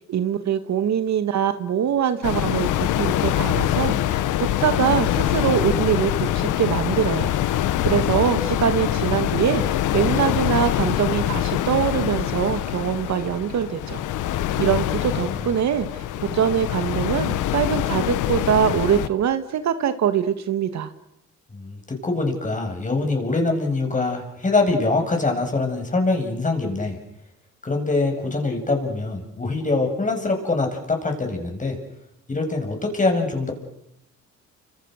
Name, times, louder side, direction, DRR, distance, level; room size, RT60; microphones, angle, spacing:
voice 1, 0.1-2.7 3.0-7.6 7.9-14.0 14.6-20.9, right 9 dB, 65° right, 10 dB, 1.9 m, -23 dB
sound 1, 2.2-19.1, left 12 dB, 85° left, 1.3 m, -24 dB
voice 2, 21.5-27.0 27.6-31.8 32.3-33.5, left 3 dB, 25° left, 3 dB, 7.5 m, -24 dB
30.0 x 26.0 x 6.6 m, 0.82 s
cardioid pair, 90°, 30 cm